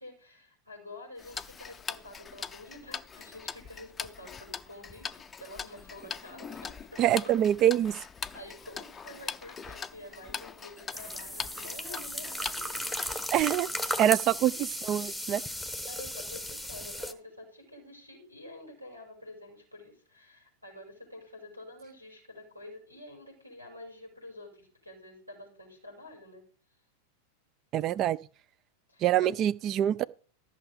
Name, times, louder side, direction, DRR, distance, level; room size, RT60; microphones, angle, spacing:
voice 1, 0.0-7.4 7.9-8.1 8.3-13.4 15.8-26.4 28.9-29.4, left 1 dB, 90° right, 5.6 m, -48 dB
Tick-tock, 1.2-13.4, left 6 dB, 15° left, 0.6 m, -42 dB
voice 2, 7.0-8.0 13.3-13.7 14.0-15.4 27.7-28.2 29.0-30.0, right 11 dB, 35° right, 0.5 m, -25 dB
sound 1, 10.9-17.1, left 1 dB, 5° right, 1.2 m, -36 dB
14.0 x 6.3 x 5.1 m
figure-of-eight pair, 90°, 0 cm